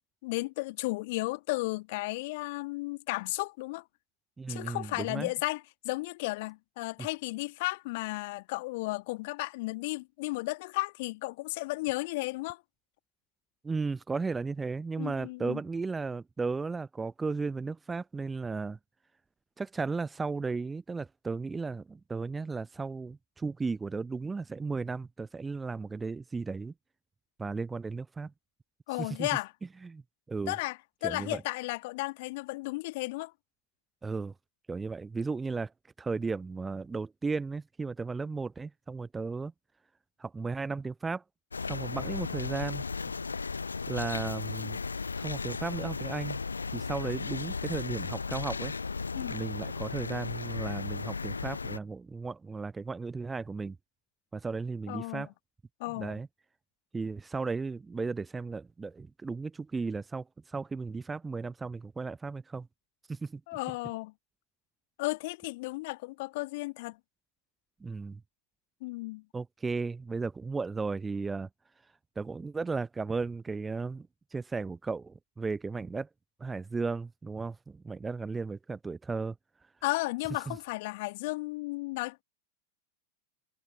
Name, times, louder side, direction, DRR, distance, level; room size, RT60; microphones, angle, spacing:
voice 1, 0.2-3.9 4.5-12.6 15.0-15.6 28.9-29.5 30.5-33.3 49.1-49.4 54.9-55.3 55.8-56.2 63.5-64.1 65.0-67.0 68.8-69.2 79.8-82.2, left 22 dB, 50° left, 1.5 m, -34 dB
voice 2, 4.4-5.3 13.6-18.8 19.6-26.7 27.4-28.3 29.0-29.3 29.8-30.0 30.3-30.5 31.0-31.4 34.0-34.3 34.7-35.7 36.0-39.5 40.2-41.2 41.7-42.8 43.9-44.8 45.2-46.4 46.7-48.7 49.3-53.8 54.3-55.3 56.0-56.3 56.9-62.7 63.1-63.4 67.8-68.2 69.3-71.5 72.2-74.1 74.3-76.1 76.4-79.3 80.5-80.6, right 4 dB, 10° right, 0.6 m, -35 dB
sound 1, 41.5-51.8, left 4 dB, 75° left, 0.6 m, -35 dB
figure-of-eight pair, 90°, 0 cm